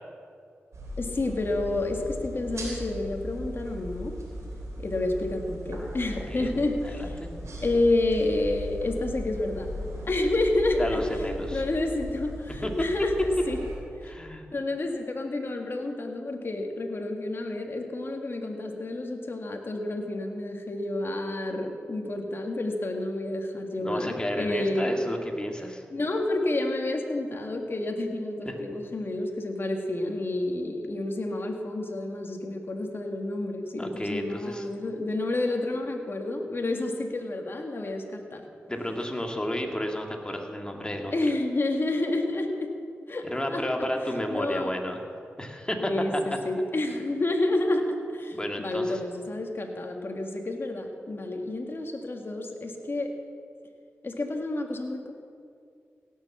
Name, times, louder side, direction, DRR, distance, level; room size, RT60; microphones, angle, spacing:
sound 1, 0.7-13.8, equal, 85° right, 3.4 m, -38 dB
voice 1, 1.0-4.1 4.8-7.1 7.6-9.7 10.0-11.0 11.5-13.6 14.5-24.9 25.9-38.4 41.1-42.7 43.1-43.6 44.3-44.7 45.8-53.1 54.0-55.1, left 2 dB, 50° left, 2 dB, 1.9 m, -29 dB
voice 2, 6.8-7.3 10.8-11.6 12.6-12.7 14.0-14.5 23.8-25.8 28.4-28.6 33.8-34.7 38.7-41.1 43.2-45.0 45.4-46.2 46.6-46.7 48.3-49.0, left 1 dB, 15° left, 2 dB, 2.0 m, -32 dB
17.0 x 7.3 x 7.2 m, 2.3 s
cardioid pair, 50°, 5 cm